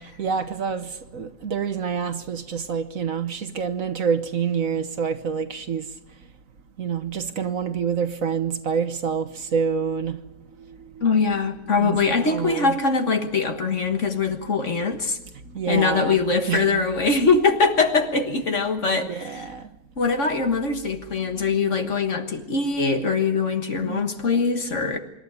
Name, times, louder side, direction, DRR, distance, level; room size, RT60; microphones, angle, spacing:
voice 1, 0.2-5.8 6.8-10.2 11.8-12.7 15.5-16.2 16.5-16.8 19.1-19.6 23.7-24.0, right 6 dB, 55° right, 1.4 m, -27 dB
voice 2, 11.0-15.2 15.7-19.5 20.0-25.0, left 4 dB, 50° left, 1.8 m, -22 dB
26.0 x 12.0 x 9.5 m
omnidirectional pair, 1.7 m